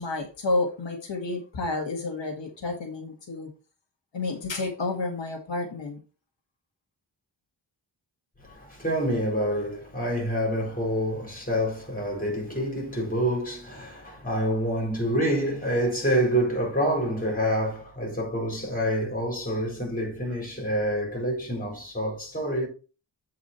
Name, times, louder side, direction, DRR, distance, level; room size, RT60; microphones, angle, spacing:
voice 1, 0.0-3.5 4.1-6.0, left 2 dB, 75° left, 1.7 m, -30 dB
voice 2, 8.4-22.7, equal, 20° left, 4.3 m, -27 dB
7.9 x 4.7 x 4.2 m
wide cardioid pair, 140°, 44 cm